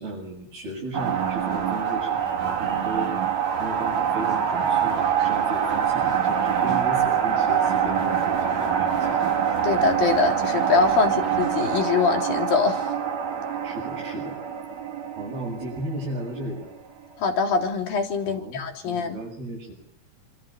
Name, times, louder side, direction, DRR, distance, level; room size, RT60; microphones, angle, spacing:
voice 1, 0.0-3.1 3.6-9.2 11.0-11.1 13.6-14.4 15.2-16.7 18.2-19.7, right 2 dB, 80° right, -3 dB, 9.5 m, -35 dB
sound 1, 0.9-16.8, right 8 dB, 50° right, 3.4 m, -25 dB
voice 2, 9.6-12.8 17.2-19.2, left 5 dB, 65° left, 3 dB, 5.1 m, -23 dB
28.5 x 26.0 x 7.3 m, 0.64 s
omnidirectional pair, 4.4 m